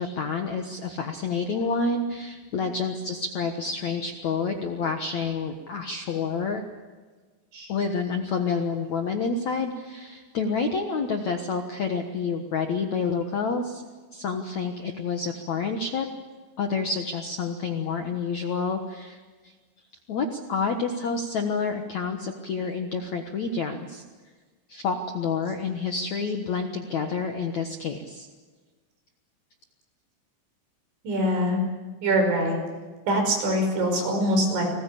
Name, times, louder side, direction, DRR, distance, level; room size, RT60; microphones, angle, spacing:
voice 1, 0.0-6.6 7.7-13.8 14.1-16.1 16.6-19.5 20.1-24.0 24.7-28.3, left 4 dB, 70° left, 5 dB, 1.8 m, -28 dB
voice 2, 31.0-31.6 32.0-32.6 33.1-34.6, equal, 75° right, 3 dB, 7.8 m, -24 dB
30.0 x 21.0 x 8.6 m, 1.4 s
omnidirectional pair, 5.3 m